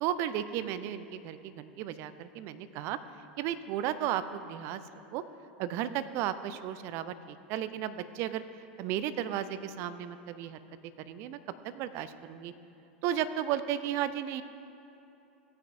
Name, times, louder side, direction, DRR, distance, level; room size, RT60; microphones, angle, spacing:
voice 1, 0.0-3.0 3.4-4.8 5.1-5.2 5.6-8.4 8.8-10.6 11.0-11.4 11.6-12.5 13.0-14.4, right 11 dB, 45° right, 13 dB, 0.5 m, -34 dB
16.5 x 9.3 x 2.6 m, 2.9 s
figure-of-eight pair, 85°, 6 cm